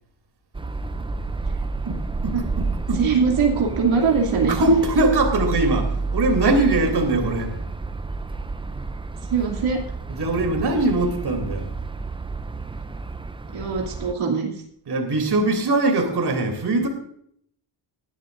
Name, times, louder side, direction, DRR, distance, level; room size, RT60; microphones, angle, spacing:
sound 1, 0.5-14.1, right 3 dB, 10° right, 0.4 m, -30 dB
voice 1, 1.8-3.0 4.5-7.5 10.1-11.6 14.9-16.9, right 2 dB, 55° right, 5 dB, 3.0 m, -21 dB
voice 2, 2.9-4.6 9.3-9.8 13.5-14.5, right 5 dB, 80° right, 0 dB, 2.7 m, -21 dB
20.0 x 12.0 x 2.6 m, 0.67 s
wide cardioid pair, 145°, 48 cm